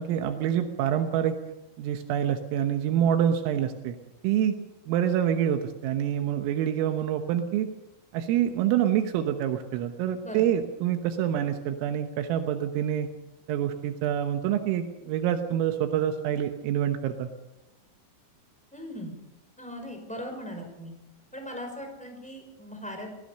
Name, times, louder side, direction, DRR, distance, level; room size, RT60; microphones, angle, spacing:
voice 1, 0.0-1.4 1.8-4.0 4.2-4.6 4.9-7.7 8.1-13.1 13.5-17.3, right 10 dB, 80° right, 6 dB, 3.7 m, -26 dB
voice 2, 18.7-19.1 19.6-20.9 21.3-23.1, equal, ahead, 3 dB, 4.8 m, -39 dB
24.0 x 17.5 x 6.7 m, 0.97 s
omnidirectional pair, 6.0 m